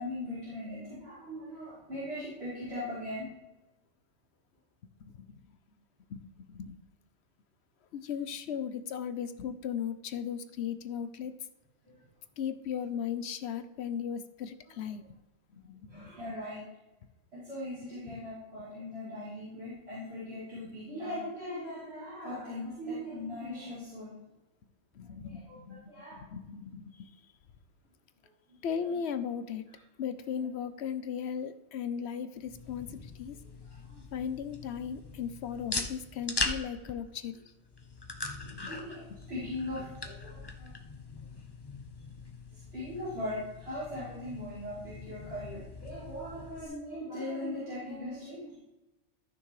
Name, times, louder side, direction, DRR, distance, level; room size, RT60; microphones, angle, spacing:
voice 1, 0.0-3.3 15.9-16.6 17.3-24.1 25.0-26.2 33.9-34.0 38.6-40.7 42.7-48.6, left 1 dB, 60° right, -11 dB, 3.7 m, -39 dB
voice 2, 5.0-5.4 6.1-6.7 7.9-11.3 12.4-15.1 15.5-16.2 18.1-18.2 24.9-27.1 28.6-29.7 30.0-33.3 34.1-37.4 38.5-38.7, left 8 dB, 65° left, 11 dB, 0.9 m, -37 dB
sound 1, 32.4-46.6, left 3 dB, 25° left, 0.8 m, -41 dB
14.0 x 6.2 x 3.2 m, 1.0 s
omnidirectional pair, 1.2 m